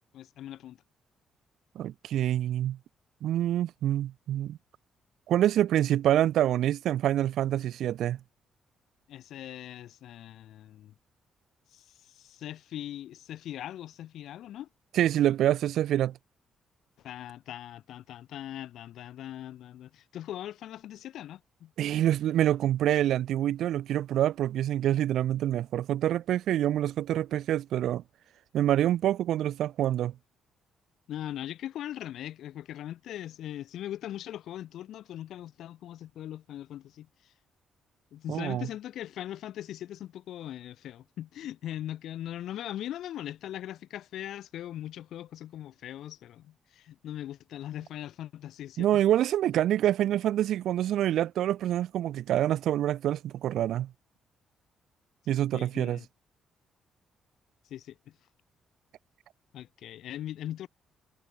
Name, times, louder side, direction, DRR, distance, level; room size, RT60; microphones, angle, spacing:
voice 1, 0.1-0.8 9.1-10.9 11.7-14.7 17.0-21.7 31.1-37.1 38.1-48.9 55.5-56.1 57.7-58.0 59.5-60.7, left 12 dB, 75° left, 3.2 m, -40 dB
voice 2, 1.8-2.8 3.2-4.6 5.3-8.2 14.9-16.1 21.8-28.0 28.5-30.1 38.3-38.7 48.8-53.9 55.3-56.0, right 12 dB, 75° right, 0.7 m, -26 dB
cardioid pair, 90°, 0 cm